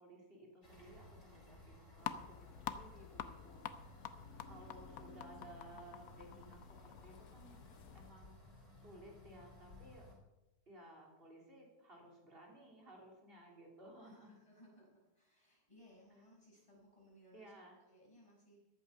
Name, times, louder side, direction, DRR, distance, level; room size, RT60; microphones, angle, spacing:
voice 1, 0.0-4.1 4.5-7.6 7.9-10.1 10.7-14.3 17.3-17.8, right 1 dB, 35° right, -1 dB, 3.5 m, -58 dB
sound 1, 0.6-10.1, left 2 dB, 50° left, 6.3 m, -59 dB
sound 2, 2.0-8.1, left 9 dB, 65° left, 1.2 m, -48 dB
voice 2, 4.1-5.3 14.0-18.7, equal, 20° left, -4 dB, 5.8 m, -64 dB
14.5 x 11.0 x 5.5 m, 0.97 s
omnidirectional pair, 1.7 m